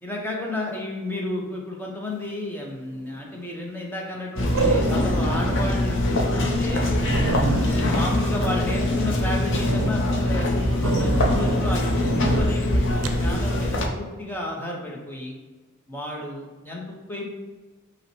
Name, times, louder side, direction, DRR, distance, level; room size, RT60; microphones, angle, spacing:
voice 1, 0.0-6.9 7.2-15.3 15.9-17.3, left 1 dB, 10° left, -2 dB, 0.7 m, -32 dB
sound 1, 2.9-3.4 4.5-5.3 5.8-5.9 6.4-6.5 6.7-6.8 7.0-9.1 9.5-9.9 10.8-11.6 12.0-12.5 13.0-13.2, right 3 dB, 80° right, 0.4 m, -27 dB
sound 2, 4.4-13.9, left 1 dB, 55° left, 0.6 m, -23 dB
5.4 x 2.1 x 4.5 m, 1.3 s
head